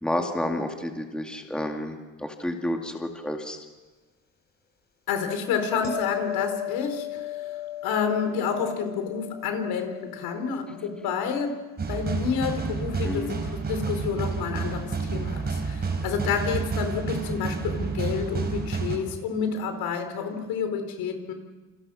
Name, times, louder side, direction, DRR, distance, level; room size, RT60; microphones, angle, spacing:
voice 1, 0.0-3.6 13.0-13.3, left 1 dB, ahead, 2 dB, 2.3 m, -30 dB
voice 2, 5.1-11.6 11.9-21.3, left 6 dB, 75° left, 7 dB, 4.5 m, -29 dB
sound 1, 5.8-12.8 18.1-18.3, left 14 dB, 30° left, 4.4 m, -38 dB
sound 2, 11.8-19.0, right 4 dB, 25° right, 4.7 m, -30 dB
28.5 x 28.5 x 6.4 m, 1.2 s
cardioid pair, 150°, 36 cm